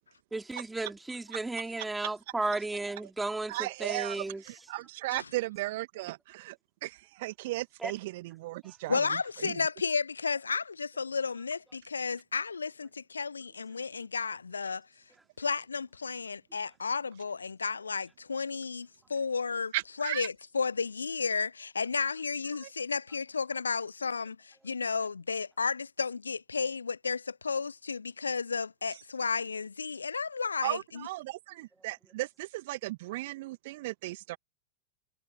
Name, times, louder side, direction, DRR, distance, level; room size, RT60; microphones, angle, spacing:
voice 1, 0.3-4.4 7.8-7.9, right 2 dB, 10° right, 3.0 m, -34 dB
voice 2, 3.5-9.6 19.7-20.3 22.6-22.7 30.6-34.4, right 19 dB, 50° right, 2.2 m, -36 dB
voice 3, 8.9-14.9 15.4-19.7 20.0-31.0, left 5 dB, 75° left, 0.9 m, -33 dB
figure-of-eight pair, 90°, 0 cm